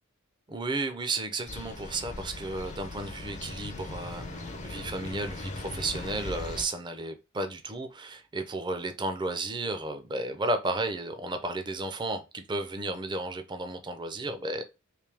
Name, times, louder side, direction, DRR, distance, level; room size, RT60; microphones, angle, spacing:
voice 1, 0.5-14.6, right 2 dB, 20° right, 0.5 m, -33 dB
sound 1, 1.5-6.7, left 2 dB, 35° left, 0.5 m, -39 dB
3.3 x 2.7 x 3.3 m
head